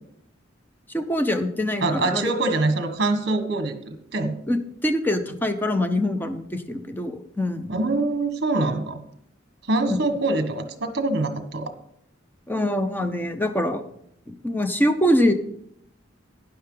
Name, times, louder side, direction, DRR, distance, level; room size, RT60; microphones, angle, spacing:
voice 1, 0.9-2.3 4.5-7.8 9.9-10.0 12.5-13.8 14.3-15.3, left 1 dB, 10° left, 8 dB, 0.8 m, -24 dB
voice 2, 1.8-4.3 7.7-9.0 9.7-11.7, right 2 dB, 55° right, 7 dB, 1.4 m, -24 dB
12.5 x 10.0 x 3.9 m, 0.71 s
head